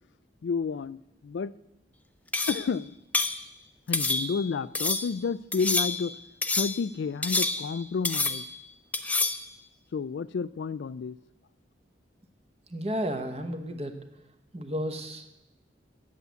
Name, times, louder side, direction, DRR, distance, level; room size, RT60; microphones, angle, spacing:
voice 1, 0.4-1.5 2.5-2.9 3.9-6.2 6.5-8.4 9.9-11.2, left 5 dB, 75° left, 17 dB, 0.3 m, -30 dB
sound 1, 2.3-2.7 3.1-3.4 3.9-4.4 4.7-5.1 5.5-6.1 6.4-6.8 7.2-7.8 8.0-8.6 8.9-9.5, left 3 dB, 10° left, 0.4 m, -28 dB
voice 2, 12.7-13.9 14.5-15.3, equal, 35° right, 7 dB, 1.1 m, -32 dB
8.3 x 8.2 x 9.2 m, 0.92 s
head